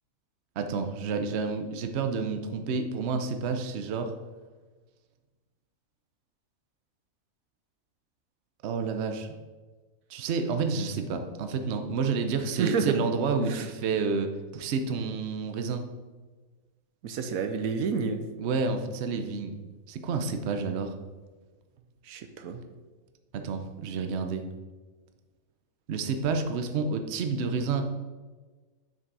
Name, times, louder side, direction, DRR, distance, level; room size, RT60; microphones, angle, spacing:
voice 1, 0.6-4.1 8.6-9.3 10.1-15.8 18.4-19.5 19.9-20.9 23.3-24.4 25.9-27.9, right 4 dB, 60° right, 7 dB, 0.9 m, -29 dB
voice 2, 12.6-13.0 13.5-13.7 17.0-18.2 22.0-22.6, right 5 dB, 85° right, 7 dB, 1.2 m, -29 dB
7.4 x 6.2 x 4.7 m, 1.3 s
omnidirectional pair, 1.4 m